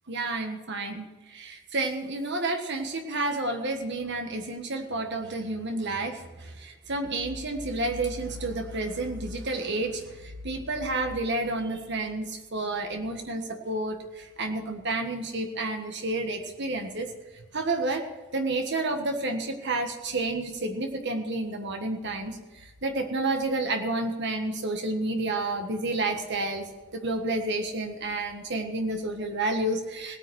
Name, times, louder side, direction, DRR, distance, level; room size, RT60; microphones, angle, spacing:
voice 1, 0.1-17.1 17.5-18.0 18.3-22.4 22.8-26.7 26.9-30.2, right 2 dB, 55° right, 4 dB, 1.5 m, -30 dB
18.0 x 9.0 x 6.3 m, 1.2 s
head